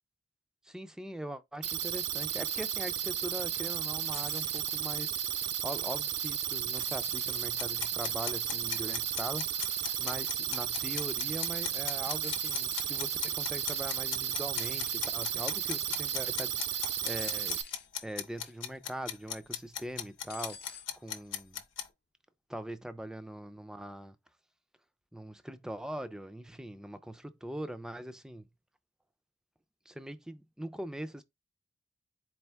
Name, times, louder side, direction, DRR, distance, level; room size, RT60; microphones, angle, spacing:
voice 1, 0.6-17.6 18.0-21.6 22.5-24.2 25.1-28.5 29.9-31.2, right 1 dB, 5° right, 0.3 m, -42 dB
sound 1, 1.6-17.6, right 10 dB, 60° right, 0.5 m, -34 dB
sound 2, 4.1-4.6 6.8-7.5 9.6-10.0 12.2-12.9 14.6-15.1 17.2-17.9 18.4-18.8 20.3-20.9 21.9-22.0, left 7 dB, 55° left, 0.6 m, -48 dB
sound 3, 7.6-21.9, left 9 dB, 85° left, 0.8 m, -37 dB
4.4 x 2.4 x 3.4 m
head